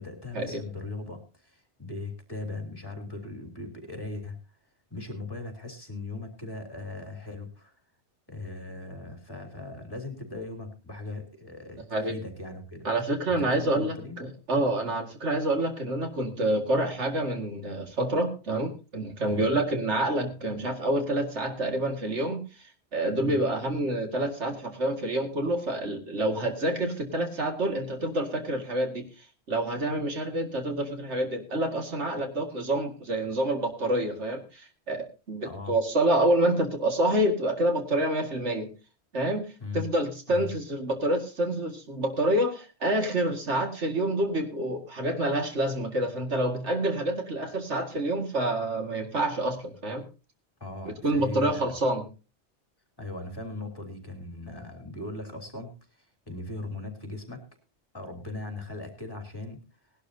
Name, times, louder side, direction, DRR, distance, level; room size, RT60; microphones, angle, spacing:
voice 1, 0.0-4.4 4.9-7.7 8.3-12.9 13.3-14.2 19.3-19.5 23.2-23.4 35.4-35.8 39.6-39.8 40.3-40.5 50.6-51.7 53.0-57.4 57.9-59.6, left 2 dB, 20° left, 5 dB, 3.3 m, -39 dB
voice 2, 12.8-22.4 22.9-29.0 29.5-38.7 39.1-39.5 39.7-50.0 51.0-52.0, right 1 dB, 80° right, 5 dB, 2.3 m, -27 dB
19.5 x 12.0 x 2.7 m, 0.30 s
omnidirectional pair, 1.2 m